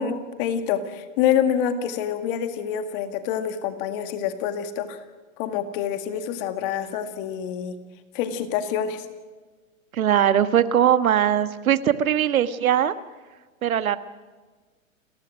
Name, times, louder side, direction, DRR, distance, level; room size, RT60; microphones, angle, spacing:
voice 1, 0.0-5.0 5.4-7.8 8.1-9.0, left 8 dB, 40° left, 9 dB, 2.0 m, -26 dB
voice 2, 9.9-12.9 13.6-14.0, right 10 dB, 85° right, 13 dB, 1.4 m, -20 dB
29.5 x 14.5 x 6.3 m, 1.4 s
hypercardioid pair, 145°, 41 cm